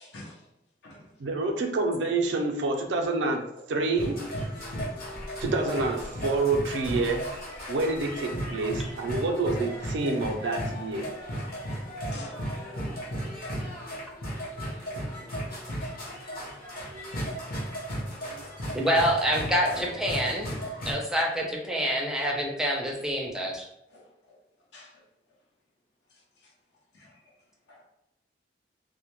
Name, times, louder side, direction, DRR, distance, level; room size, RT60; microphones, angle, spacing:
voice 1, 1.2-4.2 5.4-7.3 7.7-11.1, right 3 dB, 85° right, 2 dB, 0.4 m, -28 dB
sound 1, 3.9-20.9, equal, 55° left, 0.8 m, -35 dB
voice 2, 11.8-13.2 14.6-14.8 15.8-16.1 23.9-24.0 24.3-24.4 24.7-24.9 26.9-27.2 27.7-27.8, left 1 dB, 80° left, -1 dB, 0.6 m, -48 dB
voice 3, 18.7-20.5 20.9-23.7, equal, 5° right, -1 dB, 0.4 m, -26 dB
2.1 x 2.0 x 2.9 m, 0.87 s
head